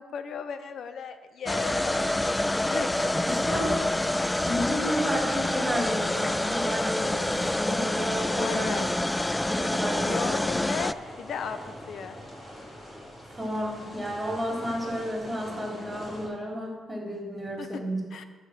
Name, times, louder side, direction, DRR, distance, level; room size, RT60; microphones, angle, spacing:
voice 1, 0.0-3.1 8.3-8.9 10.0-12.2 17.6-17.7 18.1-18.2, left 6 dB, 65° left, 10 dB, 0.8 m, -36 dB
sound 1, 1.5-10.9, left 1 dB, 10° left, 0.3 m, -27 dB
voice 2, 3.2-3.8 4.4-8.8 9.5-10.5 13.3-18.0, equal, 15° right, -2 dB, 3.9 m, -32 dB
sound 2, 9.4-16.3, equal, 25° left, 3.8 m, -44 dB
9.7 x 5.2 x 7.7 m, 1.3 s
cardioid pair, 80°, 0 cm